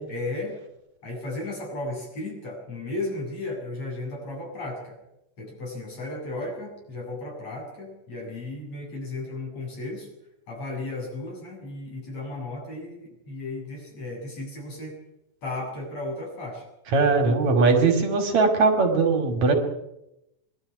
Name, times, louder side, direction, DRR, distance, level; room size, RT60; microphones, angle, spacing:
voice 1, 0.1-0.6 1.0-5.0 5.4-10.1 10.5-15.0 15.4-16.6, left 2 dB, 55° left, -1 dB, 8.3 m, -34 dB
voice 2, 16.9-19.5, right 4 dB, 60° right, 5 dB, 3.6 m, -20 dB
23.0 x 12.5 x 9.8 m, 0.84 s
omnidirectional pair, 3.6 m